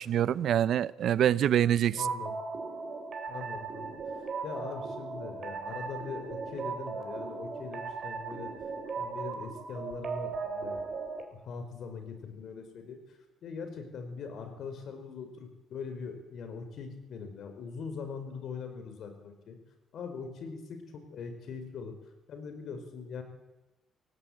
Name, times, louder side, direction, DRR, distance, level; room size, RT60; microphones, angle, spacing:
voice 1, 0.0-2.1, right 10 dB, 70° right, 0.7 m, -25 dB
voice 2, 1.9-2.3 3.3-3.9 4.4-8.5 9.0-10.8 11.3-13.0 13.4-19.6 19.9-21.9 22.3-23.2, left 5 dB, 70° left, 5.0 m, -41 dB
sound 1, 2.0-11.2, right 4 dB, 50° right, 4.1 m, -37 dB
17.5 x 17.5 x 8.8 m
cardioid pair, 90°, 0 cm